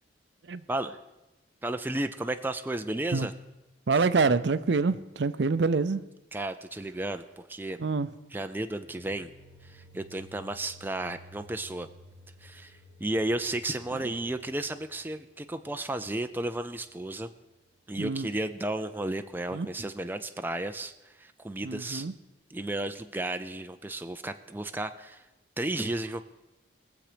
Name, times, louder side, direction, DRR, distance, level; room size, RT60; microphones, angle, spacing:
voice 1, 1.6-3.3 6.3-7.8 8.3-9.3 9.6-11.9 12.4-17.3 17.9-22.1 22.5-25.3 25.6-26.2, right 1 dB, 10° right, 8 dB, 0.4 m, -33 dB
voice 2, 3.9-6.0 7.8-8.1 13.9-14.1 18.0-18.3 19.5-19.7 21.6-22.1, right 4 dB, 65° right, 14 dB, 0.6 m, -26 dB
sound 1, 8.7-17.5, equal, 25° left, 4.2 m, -55 dB
21.0 x 7.4 x 5.0 m, 1.0 s
head